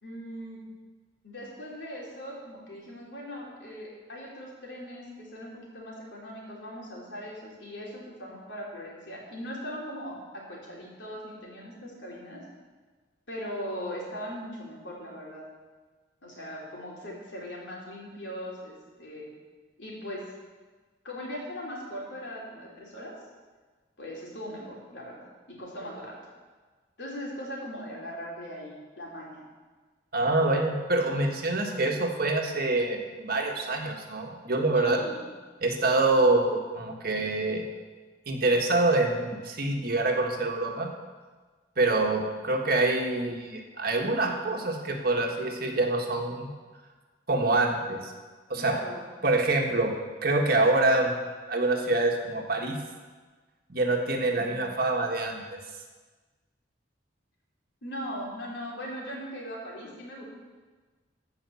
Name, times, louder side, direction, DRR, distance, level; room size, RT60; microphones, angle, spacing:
voice 1, 0.0-0.6 1.2-12.4 13.3-15.5 16.2-19.3 19.8-20.2 21.0-23.1 24.0-26.2 27.0-29.4 34.7-35.2 48.6-49.1 54.2-54.6 57.8-60.3, equal, 75° left, -3 dB, 3.4 m, -39 dB
voice 2, 30.1-35.0 35.6-37.6 38.3-40.9 41.8-46.5 47.3-48.1 48.5-48.7 49.2-49.9 50.2-51.1 51.5-52.8 53.7-55.4, right 2 dB, 55° right, 1 dB, 1.6 m, -26 dB
15.0 x 5.3 x 7.0 m, 1.4 s
head